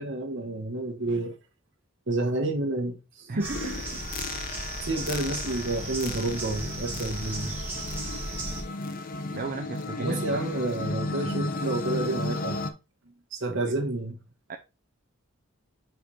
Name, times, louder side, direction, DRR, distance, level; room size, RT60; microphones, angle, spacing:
voice 1, 0.0-1.4 2.1-3.6 4.8-7.5 10.0-12.6 13.3-14.2, right 2 dB, 60° right, 1.4 m, -30 dB
voice 2, 3.3-4.0 9.3-10.4 11.1-11.5 13.6-13.7 14.5-14.6, right 4 dB, 40° right, 0.5 m, -37 dB
sound 1, 3.4-8.6, right 2 dB, 10° right, 1.8 m, -35 dB
sound 2, 3.5-12.7, left 2 dB, 40° left, 0.7 m, -34 dB
4.9 x 4.7 x 4.1 m
head